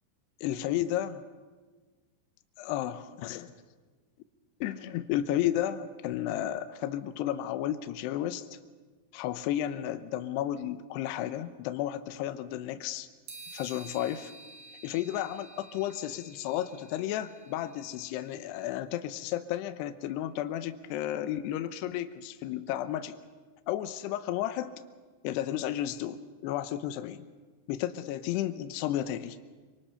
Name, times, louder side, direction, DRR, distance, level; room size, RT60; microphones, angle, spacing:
voice 1, 0.4-1.2 2.6-3.5 4.6-8.6 9.1-13.1 13.5-14.3 14.8-23.1 23.7-24.7 25.2-27.2 27.7-29.4, left 12 dB, 80° left, 10 dB, 2.6 m, -33 dB
sound 1, 13.3-18.6, right 3 dB, 55° right, 3.8 m, -51 dB
26.0 x 24.5 x 5.6 m, 1.4 s
omnidirectional pair, 5.5 m